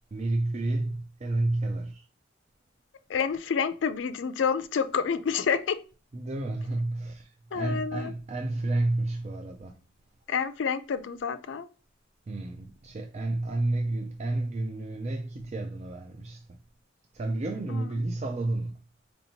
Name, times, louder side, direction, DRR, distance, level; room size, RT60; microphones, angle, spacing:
voice 1, 0.1-2.0 6.1-9.7 12.3-16.4 17.1-18.7, right 2 dB, 35° right, 0.4 m, -30 dB
voice 2, 3.1-5.8 7.5-8.1 10.3-11.7 17.7-17.9, left 6 dB, 70° left, 0.4 m, -28 dB
4.3 x 2.9 x 2.7 m
head